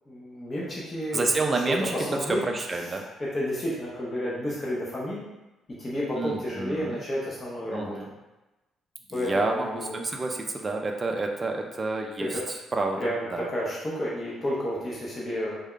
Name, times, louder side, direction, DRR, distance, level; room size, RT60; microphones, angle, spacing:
voice 1, 0.1-1.3 1.7-2.4 2.8-5.3 5.8-8.1 9.1-10.1 12.2-12.4 13.0-15.6, equal, 25° left, -6 dB, 0.7 m, -31 dB
voice 2, 1.1-1.9 2.5-3.0 6.2-7.0 7.7-8.1 9.1-12.4 12.7-13.4, right 3 dB, 25° right, 2 dB, 0.4 m, -29 dB
3.4 x 2.2 x 3.7 m, 1.0 s
cardioid pair, 135°, 0 cm